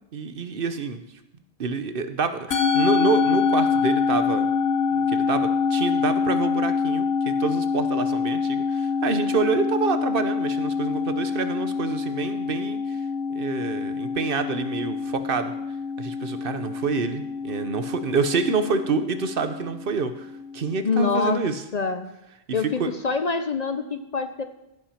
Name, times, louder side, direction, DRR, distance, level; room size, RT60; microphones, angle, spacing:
voice 1, 0.1-1.0 1.6-4.5 4.9-13.0 13.3-15.5 16.0-21.6 22.8-22.9, right 5 dB, 60° right, 10 dB, 1.0 m, -27 dB
Musical instrument, 2.5-21.0, left 5 dB, 75° left, 1.3 m, -26 dB
voice 2, 20.8-21.4 21.7-22.1 22.5-24.4, left 4 dB, 45° left, 8 dB, 0.7 m, -25 dB
15.0 x 5.8 x 5.7 m, 0.86 s
omnidirectional pair, 1.1 m